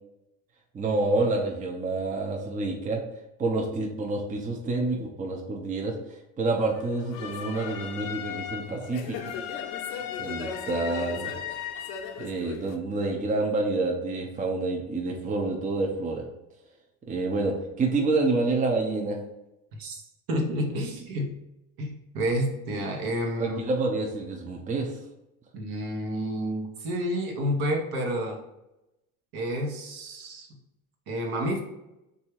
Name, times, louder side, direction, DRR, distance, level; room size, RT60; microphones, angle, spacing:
voice 1, 0.7-3.0 3.4-9.3 10.2-11.3 12.2-16.2 17.1-19.2 23.4-25.0, right 3 dB, 20° right, 1 dB, 0.6 m, -28 dB
sound 1, 6.7-12.8, left 8 dB, 60° left, 0.7 m, -36 dB
voice 2, 19.7-20.0 20.3-21.3 21.8-23.6 25.5-28.4 29.3-30.5 31.1-31.6, equal, 55° right, 2 dB, 1.1 m, -29 dB
3.5 x 2.7 x 4.6 m, 0.93 s
hypercardioid pair, 85°, 41 cm